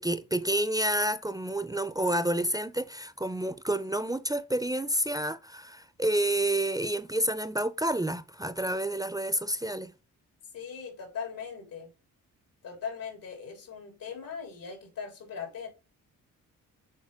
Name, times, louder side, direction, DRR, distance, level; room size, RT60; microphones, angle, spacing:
voice 1, 0.0-9.9, right 1 dB, 10° right, 0.5 m, -29 dB
voice 2, 10.5-11.9 12.6-15.7, left 6 dB, 85° left, 3.3 m, -39 dB
7.3 x 4.1 x 3.5 m
cardioid pair, 80°, 34 cm